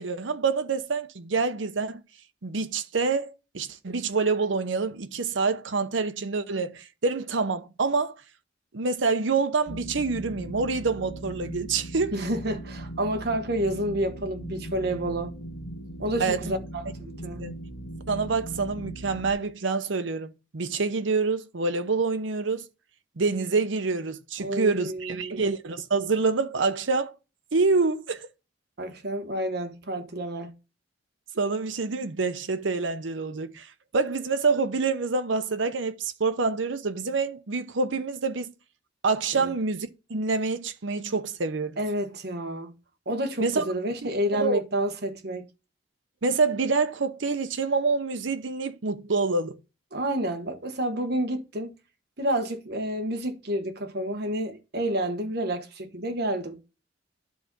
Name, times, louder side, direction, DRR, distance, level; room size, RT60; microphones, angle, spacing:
voice 1, 0.0-2.0 2.4-8.2 8.7-12.1 16.2-16.6 17.4-17.5 18.1-22.7 23.2-27.1 27.5-28.3 31.3-38.5 39.0-41.8 43.4-43.6 44.0-44.6 46.2-49.6, right 4 dB, 80° right, 0.8 m, -27 dB
sound 1, 9.7-19.3, right 1 dB, 45° left, 1.7 m, -39 dB
voice 2, 12.1-15.3 16.0-17.4 24.4-25.4 28.8-30.5 39.3-39.5 41.8-42.7 43.1-45.4 49.9-51.7 52.2-56.6, right 1 dB, 60° right, 1.3 m, -29 dB
10.5 x 4.0 x 6.0 m
head